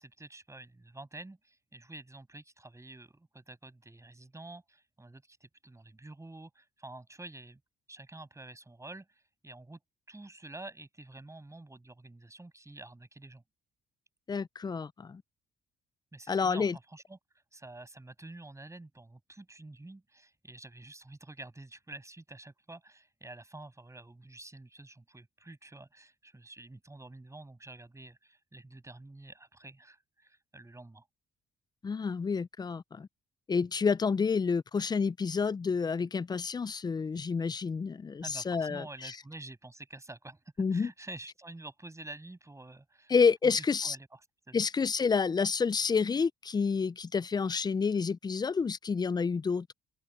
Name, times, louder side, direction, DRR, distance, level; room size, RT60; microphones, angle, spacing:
voice 1, 0.0-7.6 7.9-9.8 10.1-13.4 16.1-31.1 38.2-40.4 40.7-43.1 43.4-44.2 44.5-44.6, right 2 dB, 15° right, 6.5 m, -49 dB
voice 2, 14.3-15.2 16.3-16.8 31.8-33.1 33.5-39.1 40.6-40.9 43.1-44.0 44.5-49.7, left 5 dB, 20° left, 0.3 m, -29 dB
open air
cardioid pair, 90°, 20 cm